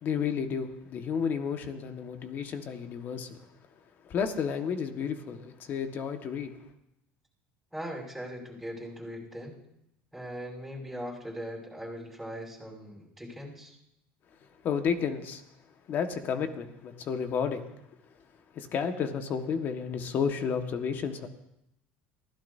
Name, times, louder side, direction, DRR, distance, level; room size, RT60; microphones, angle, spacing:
voice 1, 0.0-3.4 4.1-6.5 14.6-15.4 15.9-17.6 18.5-21.3, left 6 dB, 40° left, 6 dB, 1.6 m, -31 dB
voice 2, 7.7-9.6 10.1-13.7, equal, ahead, -2 dB, 6.0 m, -40 dB
23.5 x 15.5 x 2.8 m, 0.82 s
cardioid pair, 130°, 5 cm